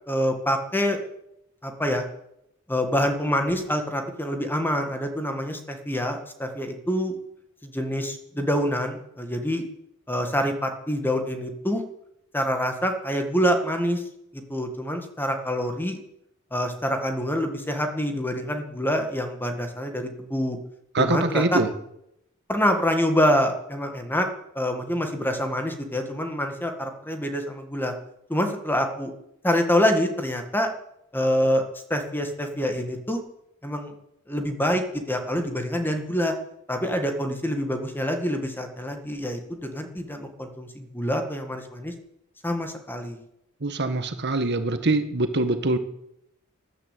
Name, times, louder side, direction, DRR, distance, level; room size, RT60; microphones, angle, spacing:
voice 1, 0.1-1.0 1.6-2.1 2.7-7.2 7.6-9.6 10.1-11.8 12.3-14.0 14.3-16.0 16.5-20.6 21.0-21.6 22.5-24.3 24.6-27.9 28.3-29.1 29.4-30.7 31.1-31.6 31.9-33.2 33.6-33.9 34.3-36.3 36.7-41.9 42.4-43.2, equal, 10° left, 5 dB, 1.9 m, -26 dB
voice 2, 20.9-21.7 43.6-45.8, right 2 dB, 55° right, 8 dB, 1.5 m, -24 dB
13.5 x 12.0 x 8.3 m, 0.79 s
head